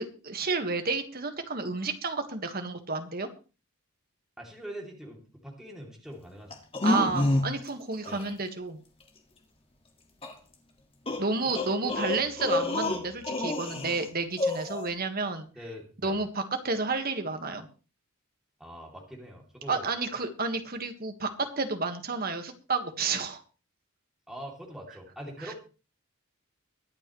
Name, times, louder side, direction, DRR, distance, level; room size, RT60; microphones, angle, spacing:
voice 1, 0.0-3.3 6.8-8.8 11.2-15.5 16.0-17.7 19.7-23.4 25.4-25.5, right 3 dB, 45° right, 6 dB, 1.7 m, -31 dB
voice 2, 4.4-6.5 8.1-8.2 11.4-11.9 15.5-16.2 18.6-19.9 24.3-25.5, equal, ahead, -1 dB, 2.9 m, -43 dB
sound 1, 6.5-7.7 8.0-8.3 10.2-10.3 11.1-14.1 14.4-14.9, left 2 dB, 25° left, 1.9 m, -29 dB
23.0 x 8.8 x 3.2 m, 0.34 s
head